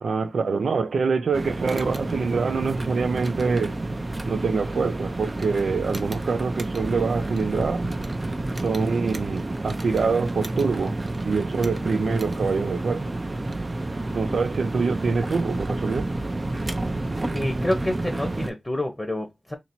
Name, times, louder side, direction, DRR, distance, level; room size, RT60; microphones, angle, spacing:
voice 1, 0.0-3.8 4.2-7.9 8.6-11.0 11.3-13.0 14.1-16.1, right 4 dB, 80° right, 0.4 m, -25 dB
sound 1, 1.3-18.5, right 2 dB, 35° right, 0.6 m, -30 dB
voice 2, 17.3-19.5, left 1 dB, 15° left, 0.8 m, -28 dB
2.8 x 2.8 x 4.2 m
wide cardioid pair, 65°, 0 cm